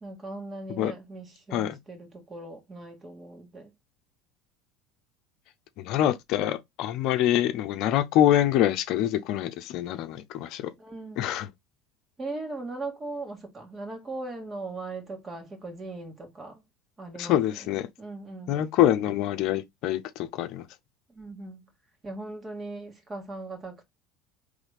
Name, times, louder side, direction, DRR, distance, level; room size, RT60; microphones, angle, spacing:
voice 1, 0.0-3.7 10.8-11.2 12.2-16.6 17.0-18.6 21.1-21.7 22.0-23.8, right 2 dB, 25° right, 1.8 m, -39 dB
voice 2, 5.8-10.7 11.2-11.5 17.2-17.9 18.5-20.6, left 12 dB, 65° left, 0.6 m, -25 dB
3.9 x 3.3 x 3.3 m
supercardioid pair, 100°, 0 cm